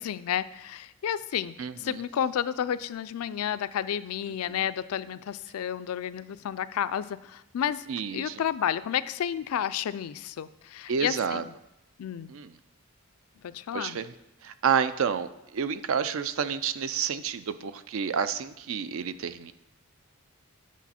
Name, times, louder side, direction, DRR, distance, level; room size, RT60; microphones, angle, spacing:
voice 1, 0.0-7.8 8.1-11.4 12.0-12.3 13.4-14.0, left 9 dB, 80° left, 15 dB, 0.3 m, -31 dB
voice 2, 1.6-2.0 4.5-4.7 7.9-8.4 10.9-11.4 12.3-12.6 13.7-14.1 14.4-19.5, right 7 dB, 65° right, 13 dB, 0.4 m, -30 dB
8.3 x 6.0 x 4.2 m, 0.88 s
head